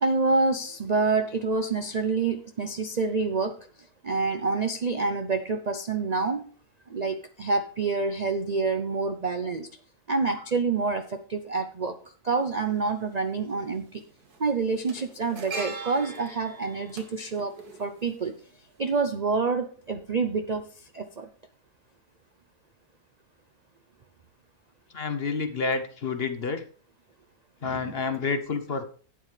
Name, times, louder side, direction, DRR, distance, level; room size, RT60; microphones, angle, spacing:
voice 1, 0.0-3.7 4.0-6.4 6.9-9.7 10.1-12.0 12.2-14.0 14.4-17.5 17.8-18.3 18.8-20.6 20.9-21.3 27.6-27.9, right 4 dB, 50° right, 7 dB, 0.5 m, -27 dB
sound 1, 12.4-12.5 13.7-14.0 14.2-18.5 18.8-19.0, right 4 dB, 90° right, 2.2 m, -40 dB
voice 2, 24.9-26.6 27.6-28.8, left 4 dB, 45° left, 8 dB, 1.0 m, -29 dB
12.0 x 9.1 x 3.3 m, 0.43 s
omnidirectional pair, 1.6 m